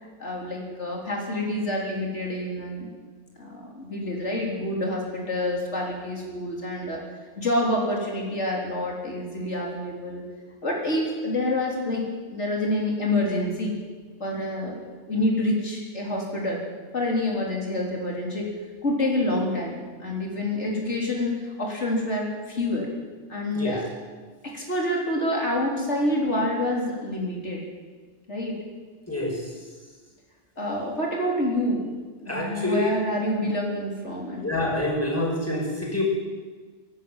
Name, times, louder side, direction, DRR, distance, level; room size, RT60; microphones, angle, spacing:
voice 1, 0.2-2.9 3.4-7.1 7.3-10.2 10.6-13.7 14.2-14.8 15.1-16.6 16.9-18.5 18.8-22.9 23.3-23.9 24.4-27.6 28.3-28.6 30.6-32.0 32.2-34.5, left 1 dB, 80° left, -1 dB, 4.2 m, -27 dB
voice 2, 29.1-29.4 32.3-32.9 34.4-36.0, left 1 dB, 10° left, -1 dB, 5.3 m, -26 dB
24.0 x 12.0 x 9.1 m, 1.4 s
omnidirectional pair, 1.2 m